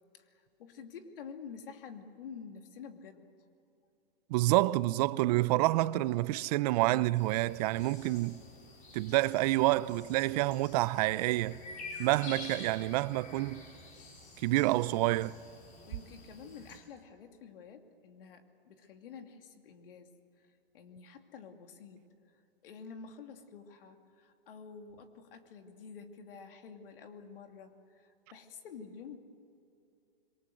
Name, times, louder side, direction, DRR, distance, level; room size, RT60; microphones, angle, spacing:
voice 1, 0.1-3.3 15.9-20.5 20.7-22.1 22.6-29.2, left 6 dB, 70° left, 2.7 m, -49 dB
voice 2, 4.3-8.4 8.9-11.6 12.0-13.6 14.4-15.3, right 18 dB, 40° right, 0.7 m, -28 dB
sound 1, 7.2-16.8, left 3 dB, 25° left, 5.4 m, -49 dB
26.0 x 23.0 x 7.9 m
hypercardioid pair, 135°, 29 cm